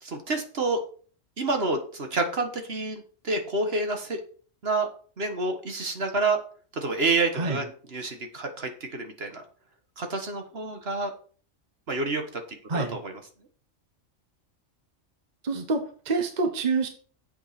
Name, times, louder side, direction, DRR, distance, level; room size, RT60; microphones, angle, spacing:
voice 1, 0.0-0.8 1.4-4.2 4.6-4.9 5.2-6.4 6.7-9.4 10.0-11.1 11.9-12.4 12.7-13.2, right 3 dB, 50° right, 5 dB, 1.6 m, -28 dB
voice 2, 15.4-16.9, right 4 dB, 35° right, 5 dB, 1.2 m, -27 dB
8.9 x 8.0 x 4.2 m, 0.42 s
omnidirectional pair, 1.3 m